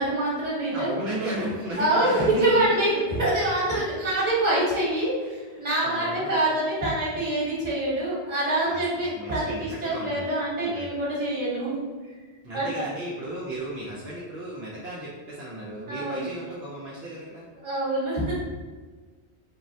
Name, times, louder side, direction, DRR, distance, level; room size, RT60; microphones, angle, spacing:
voice 1, 0.0-0.9 1.8-11.8 12.5-12.8 15.9-16.2 17.6-18.3, right 1 dB, 40° right, -7 dB, 1.2 m, -25 dB
voice 2, 0.7-3.2 5.2-6.4 8.7-10.3 10.6-11.0 12.4-17.4, right 1 dB, 70° right, -6 dB, 0.8 m, -35 dB
3.8 x 2.0 x 2.6 m, 1.4 s
omnidirectional pair, 1.1 m